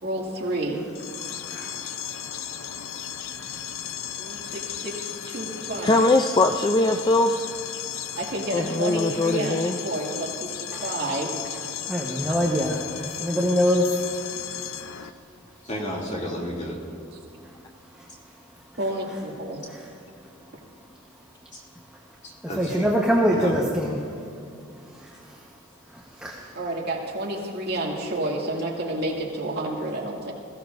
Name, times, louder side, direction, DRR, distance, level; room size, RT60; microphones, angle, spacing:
voice 1, 0.0-0.9 4.2-6.2 8.1-10.5 10.8-11.6 12.2-12.3 18.8-19.6 26.5-30.3, right 1 dB, 55° right, -2 dB, 2.2 m, -30 dB
sound 1, 0.9-15.1, left 9 dB, 75° left, 0.6 m, -35 dB
voice 2, 5.8-7.4 8.5-9.8, left 2 dB, 20° left, 6 dB, 0.4 m, -21 dB
voice 3, 11.9-13.9 19.7-19.8 22.6-23.9 26.2-26.4, equal, 5° right, -4 dB, 1.1 m, -23 dB
voice 4, 15.6-16.8 21.5-21.6 22.2-22.9 23.3-23.6, equal, 35° left, -4 dB, 2.7 m, -32 dB
21.0 x 15.5 x 2.6 m, 2.5 s
head